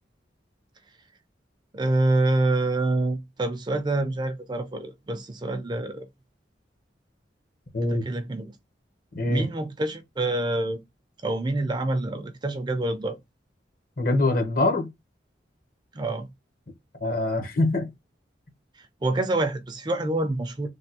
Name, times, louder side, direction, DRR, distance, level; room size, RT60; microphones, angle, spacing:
voice 1, 1.7-6.1 7.9-8.6 9.3-10.8 11.2-13.2 15.9-16.3 18.8-20.7, right 2 dB, 25° right, 0.4 m, -26 dB
voice 2, 14.0-14.9 17.0-17.9, left 2 dB, 50° left, 0.8 m, -24 dB
3.3 x 2.2 x 2.7 m
head